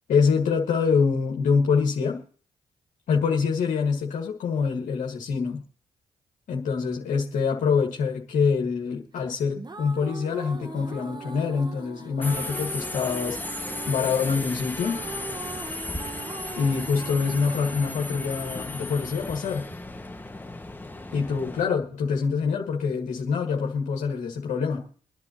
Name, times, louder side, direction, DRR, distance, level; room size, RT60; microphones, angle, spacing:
voice 1, 0.1-2.2 3.1-5.6 6.5-13.4 13.9-15.0 16.5-19.7 21.1-24.9, left 5 dB, 75° left, 1 dB, 1.7 m, -25 dB
sound 1, 9.3-20.3, right 4 dB, 30° right, 1.3 m, -41 dB
Subway metro underground, 12.2-21.7, left 2 dB, 15° left, 1.6 m, -35 dB
23.0 x 10.5 x 2.9 m, 0.41 s
hypercardioid pair, 40°, 13 cm